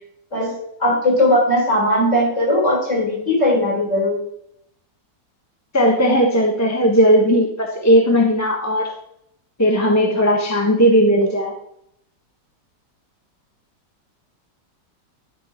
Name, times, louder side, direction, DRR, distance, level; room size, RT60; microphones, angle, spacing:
voice 1, 0.3-4.3, left 1 dB, 40° left, -4 dB, 4.8 m, -18 dB
voice 2, 5.7-8.9 9.6-11.5, equal, 10° left, 0 dB, 0.9 m, -16 dB
11.0 x 4.2 x 5.6 m, 0.74 s
omnidirectional pair, 2.0 m